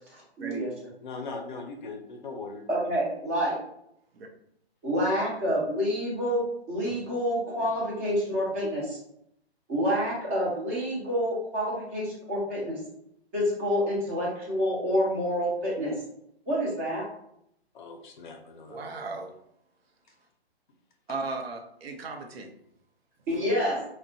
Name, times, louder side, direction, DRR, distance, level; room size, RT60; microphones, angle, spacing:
voice 1, 0.4-0.7 2.7-3.6 4.8-9.0 9.7-12.8 13.3-15.9 16.5-17.0 23.3-23.8, equal, 15° right, -5 dB, 0.4 m, -28 dB
voice 2, 1.0-2.6 17.7-18.8, left 3 dB, 50° left, 3 dB, 0.5 m, -39 dB
voice 3, 18.7-19.3 21.1-22.5, right 3 dB, 65° right, 3 dB, 0.6 m, -36 dB
2.7 x 2.1 x 2.6 m, 0.75 s
hypercardioid pair, 145°, 32 cm